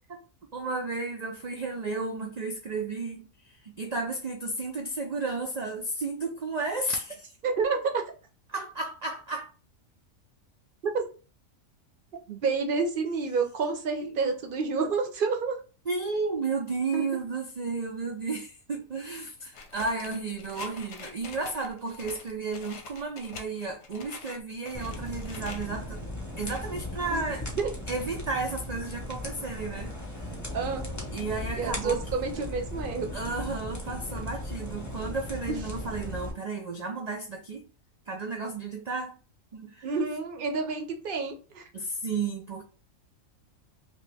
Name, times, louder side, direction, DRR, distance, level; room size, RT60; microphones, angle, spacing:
voice 1, 0.5-7.3 8.5-9.5 14.0-14.3 15.9-26.0 26.4-27.4 27.9-30.3 31.1-32.0 33.1-37.6 38.1-39.2 39.5-39.9 41.7-42.6, right 3 dB, 85° right, 0.3 m, -33 dB
voice 2, 7.4-8.0 10.8-11.0 12.3-15.6 16.9-17.1 27.1-27.2 27.6-27.7 30.5-30.9 31.5-33.1 35.5-35.6 39.8-41.7, right 4 dB, 55° right, 0.6 m, -29 dB
sound 1, 19.5-25.7 26.2-26.8 27.2-27.3 27.7-27.8 28.5-29.0 29.5-29.9 30.4-30.5 30.8-30.9 31.1-31.2, left 4 dB, 65° left, 0.9 m, -46 dB
sound 2, 24.7-36.3, left 1 dB, 15° left, 0.7 m, -37 dB
2.9 x 2.9 x 3.3 m
omnidirectional pair, 1.4 m